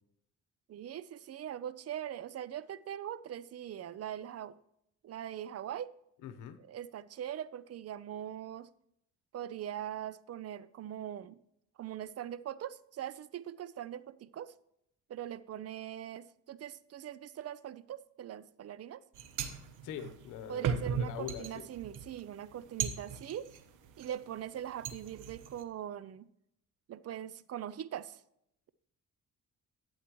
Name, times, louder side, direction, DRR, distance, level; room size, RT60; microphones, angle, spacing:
voice 1, 0.7-4.5 5.0-5.9 6.7-8.7 9.3-11.4 11.8-14.5 15.1-19.0 20.5-23.5 24.0-26.3 26.9-28.2, right 10 dB, 55° right, 0.6 m, -41 dB
voice 2, 6.2-6.6 19.8-21.7, left 9 dB, 90° left, 1.0 m, -43 dB
sound 1, 19.1-24.1 24.5-25.6, right 7 dB, 85° right, 1.1 m, -38 dB
12.0 x 9.0 x 3.1 m
cardioid pair, 90°, 30 cm